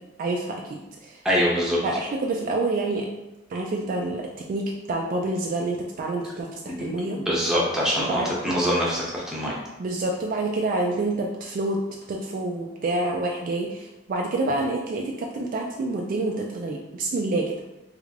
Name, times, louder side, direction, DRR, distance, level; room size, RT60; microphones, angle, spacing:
voice 1, 0.2-1.2 1.8-3.1 3.5-7.2 8.0-8.3 9.8-11.8 12.1-17.5, right 2 dB, 45° right, 0 dB, 0.3 m, -27 dB
voice 2, 1.2-1.8 6.6-6.9 7.3-9.6, equal, 5° right, -6 dB, 0.8 m, -24 dB
3.3 x 3.2 x 2.5 m, 0.97 s
head